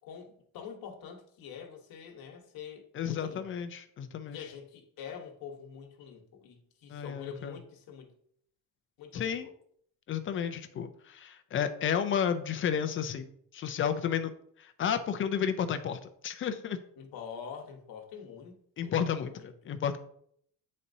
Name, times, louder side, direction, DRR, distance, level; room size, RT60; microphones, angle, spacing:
voice 1, 0.0-3.5 4.3-8.1 9.0-9.5 17.0-19.8, left 7 dB, 85° left, 1.2 m, -46 dB
voice 2, 2.9-4.4 6.9-7.5 9.1-9.5 10.1-13.3 13.5-14.3 14.6-16.8 18.8-19.3 19.6-20.0, left 8 dB, 35° left, 0.4 m, -32 dB
8.4 x 4.2 x 2.7 m
cardioid pair, 175°, 35 cm